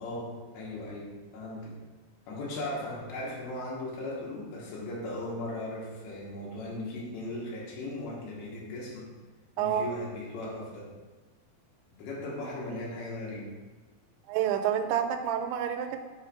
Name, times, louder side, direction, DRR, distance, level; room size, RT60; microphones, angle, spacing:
voice 1, 0.0-1.8 2.3-9.1 9.6-10.9 11.9-13.5, left 1 dB, 80° left, -4 dB, 3.4 m, -37 dB
voice 2, 14.3-16.0, right 9 dB, 85° right, 7 dB, 2.8 m, -28 dB
7.2 x 2.5 x 5.6 m, 1.3 s
omnidirectional pair, 5.1 m